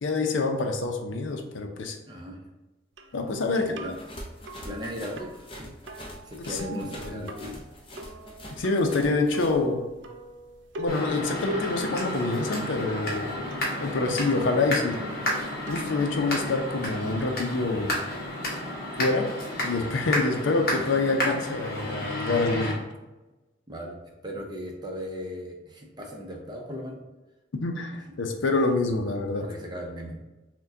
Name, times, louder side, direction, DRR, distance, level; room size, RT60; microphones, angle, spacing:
voice 1, 0.0-2.0 3.1-3.9 6.5-7.3 8.6-9.8 10.8-13.3 13.8-15.0 15.7-17.9 19.0-19.3 19.6-22.8 27.6-29.4, left 3 dB, 80° left, 4 dB, 0.5 m, -26 dB
voice 2, 2.1-2.5 3.5-3.9 4.6-5.7 6.2-7.6 23.7-23.9 24.2-27.0 29.4-30.2, equal, 20° right, 0 dB, 0.5 m, -37 dB
sound 1, 3.0-18.3, equal, 70° right, 0.4 m, -42 dB
sound 2, 3.9-9.6, equal, 25° left, 0.5 m, -43 dB
sound 3, 10.9-22.7, left 1 dB, 50° left, 1.0 m, -32 dB
5.8 x 2.2 x 2.7 m, 1.1 s
head